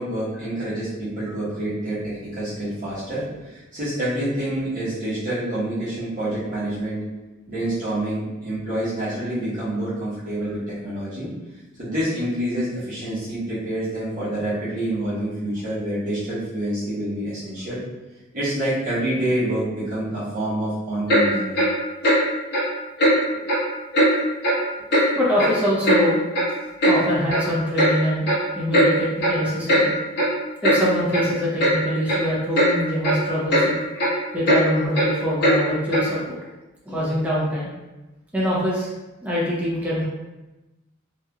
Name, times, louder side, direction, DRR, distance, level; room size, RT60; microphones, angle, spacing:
voice 1, 0.0-7.0 7.5-11.3 11.8-17.8 18.3-21.6 23.3-23.4, right 1 dB, 40° right, -12 dB, 1.1 m, -27 dB
Clock, 21.1-21.2 21.5-21.7 22.0-22.2 22.5-22.7 23.0-23.1 23.5-23.6 23.9-24.1 24.4-24.6 24.9-25.0 25.4-26.0 26.3-26.4 26.8-27.0 27.3-27.4 27.8-27.9 28.3-28.4 28.7-28.9 29.2-29.4 29.7-29.8 30.2-30.3 30.6-30.8 31.1-31.2 31.6-31.7 32.1-32.2 32.5-32.7 33.0-33.2 33.5-33.7 34.0-34.1 34.4-34.6 34.9-35.1 35.4-35.6 35.9-36.1, equal, 50° left, 1.2 m, -18 dB
voice 2, 25.1-26.2 26.9-28.3 28.5-29.9 30.6-33.8 34.3-36.4 36.8-37.7 38.3-38.9 39.2-40.1, equal, 5° right, -7 dB, 0.8 m, -24 dB
3.3 x 3.1 x 2.3 m, 1.1 s
head